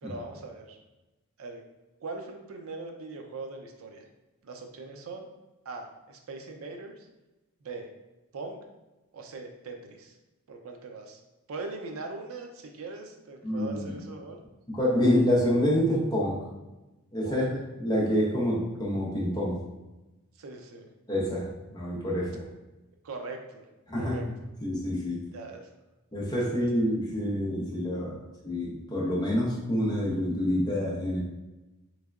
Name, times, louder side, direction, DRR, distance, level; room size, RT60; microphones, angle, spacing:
voice 1, 0.0-0.8 1.4-1.6 2.0-4.0 4.4-5.3 5.6-7.1 7.6-7.9 8.3-8.6 9.1-10.2 10.5-11.2 11.5-14.4 17.2-17.5 20.4-20.9 23.0-23.7 24.0-24.5 25.3-25.7 26.3-26.7, right 3 dB, 70° right, 3 dB, 0.4 m, -41 dB
voice 2, 13.4-13.9 14.7-16.5 17.1-19.6 21.1-22.4 23.9-24.2 24.6-25.2 26.1-28.2 28.4-31.2, equal, 20° left, -4 dB, 0.6 m, -27 dB
3.5 x 3.2 x 2.4 m, 1.1 s
head